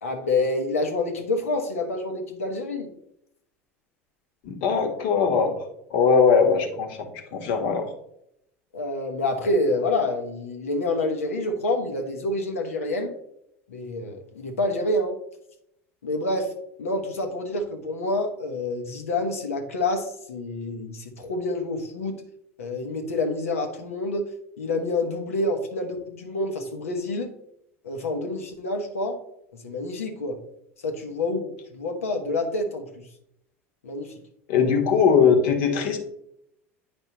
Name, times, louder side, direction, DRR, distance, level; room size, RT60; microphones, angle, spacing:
voice 1, 0.0-2.9 8.7-13.1 13.7-15.2 16.0-16.5 16.8-22.2 22.6-24.2 24.6-27.3 27.8-29.2 29.5-30.4 30.8-32.9 33.8-34.1, left 2 dB, 85° left, 4 dB, 1.1 m, -27 dB
voice 2, 4.4-5.6 5.9-7.9 34.5-36.0, left 6 dB, 65° left, 4 dB, 1.3 m, -20 dB
8.8 x 5.4 x 3.0 m, 0.77 s
hypercardioid pair, 80°, 7 cm